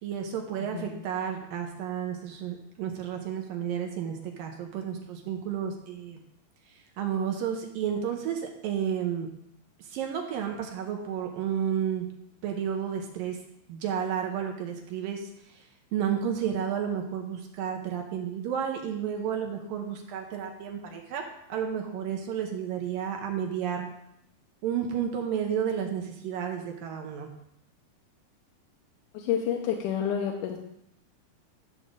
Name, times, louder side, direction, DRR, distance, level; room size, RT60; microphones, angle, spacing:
voice 1, 0.0-6.2 7.0-9.3 9.9-12.1 12.4-13.4 13.7-15.3 15.9-21.2 21.5-23.9 24.6-27.3, right 8 dB, 75° right, 2 dB, 2.6 m, -31 dB
voice 2, 29.1-30.6, left 8 dB, 75° left, 0 dB, 2.1 m, -29 dB
13.0 x 6.6 x 3.8 m, 0.77 s
omnidirectional pair, 4.3 m